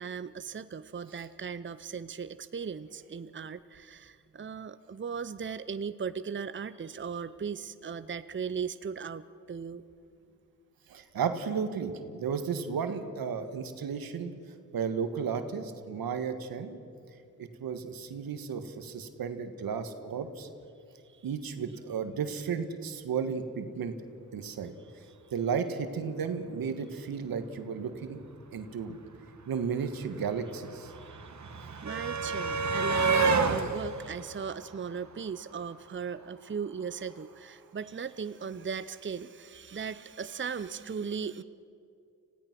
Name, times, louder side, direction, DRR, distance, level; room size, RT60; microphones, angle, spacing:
voice 1, 0.0-9.8 30.9-41.4, right 6 dB, 35° right, 13 dB, 0.8 m, -38 dB
voice 2, 10.9-14.3 14.7-16.8 17.4-20.5 21.2-23.9 24.3-24.7 25.3-28.2 28.5-29.0 29.5-30.9, right 6 dB, 80° right, 8 dB, 1.7 m, -33 dB
sound 1, 29.1-29.2 29.3-35.5 36.7-36.8 37.1-37.2, right 4 dB, 50° right, 1.9 m, -30 dB
26.5 x 16.5 x 6.1 m, 2.6 s
supercardioid pair, 40°, 35 cm